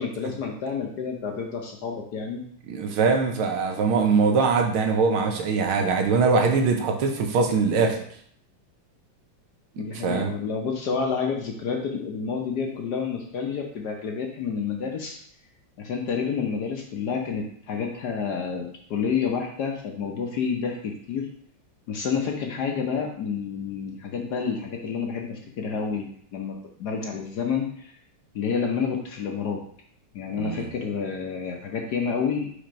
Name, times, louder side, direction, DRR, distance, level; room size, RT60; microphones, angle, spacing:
voice 1, 0.0-2.4 9.8-15.2 15.8-21.3 21.9-28.0 28.3-29.6 30.1-32.5, left 6 dB, 65° left, 2 dB, 1.1 m, -29 dB
voice 2, 2.7-8.0 10.0-10.3 30.4-30.7, right 4 dB, 80° right, 3 dB, 1.7 m, -22 dB
4.9 x 4.4 x 5.1 m, 0.62 s
omnidirectional pair, 2.3 m